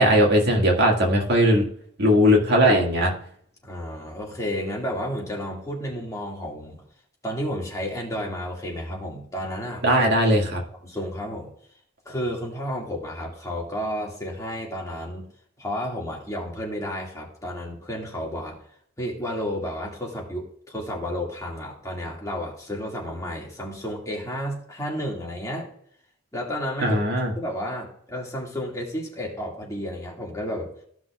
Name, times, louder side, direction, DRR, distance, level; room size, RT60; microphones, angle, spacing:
voice 1, 0.0-1.7 2.0-3.1 9.8-10.6 26.8-27.3, equal, 55° right, 0 dB, 2.0 m, -19 dB
voice 2, 3.6-6.8 7.2-9.8 10.8-11.5 12.1-15.3 15.6-18.7 19.0-25.7 26.3-27.0 27.4-30.7, equal, 15° left, -2 dB, 2.1 m, -32 dB
15.0 x 5.9 x 2.4 m, 0.63 s
head